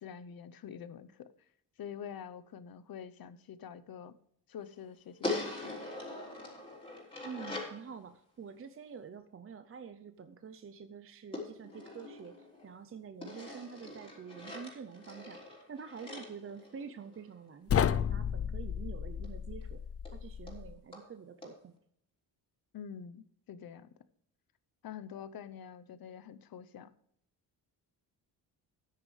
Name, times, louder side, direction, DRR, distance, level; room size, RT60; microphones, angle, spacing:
voice 1, 0.0-1.3 1.8-4.1 4.5-5.8 22.7-23.9 24.8-26.9, left 8 dB, 55° left, 15 dB, 0.9 m, -46 dB
sound 1, 5.2-7.8 11.3-12.7 13.2-17.3 19.2-19.3 19.6-19.7 20.1-20.2 20.5-20.6 20.9-21.1 21.4-21.5, left 2 dB, 15° left, 3.5 m, -42 dB
voice 2, 7.2-12.3 12.6-15.4 15.7-19.8 20.1-21.8, right 6 dB, 30° right, 9 dB, 0.6 m, -47 dB
sound 2, 17.7-20.8, left 8 dB, 35° left, 0.4 m, -33 dB
14.0 x 9.7 x 3.3 m, 0.70 s
wide cardioid pair, 150°, 42 cm